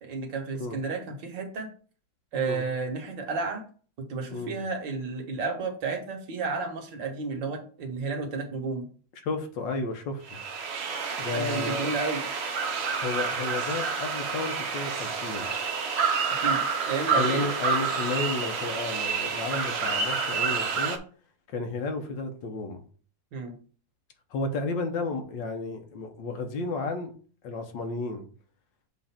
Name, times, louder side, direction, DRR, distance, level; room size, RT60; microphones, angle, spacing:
voice 1, 0.0-1.7 2.3-3.6 4.1-8.9 11.3-12.2 16.4-16.6 16.9-17.5 23.3-23.5, right 4 dB, 70° right, 4 dB, 1.9 m, -32 dB
voice 2, 2.3-2.7 4.3-4.6 9.2-10.4 11.2-11.9 13.0-15.5 17.1-21.0 21.5-22.8 24.3-27.1 27.4-28.3, left 3 dB, 70° left, 5 dB, 1.7 m, -32 dB
sound 1, 10.3-21.0, right 5 dB, 55° right, 0.7 m, -29 dB
7.6 x 2.6 x 5.7 m, 0.42 s
omnidirectional pair, 2.1 m